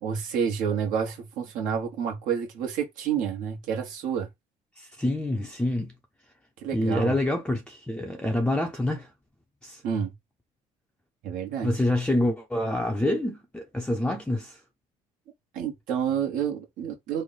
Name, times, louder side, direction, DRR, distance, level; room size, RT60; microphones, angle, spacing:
voice 1, 0.0-4.3 6.6-7.1 9.8-10.1 11.2-11.7 15.5-17.2, right 7 dB, 70° right, 1.1 m, -29 dB
voice 2, 4.8-5.9 6.7-9.1 9.6-9.8 11.6-14.6, left 1 dB, 5° left, 0.5 m, -27 dB
3.2 x 2.1 x 3.9 m
supercardioid pair, 95°, 14 cm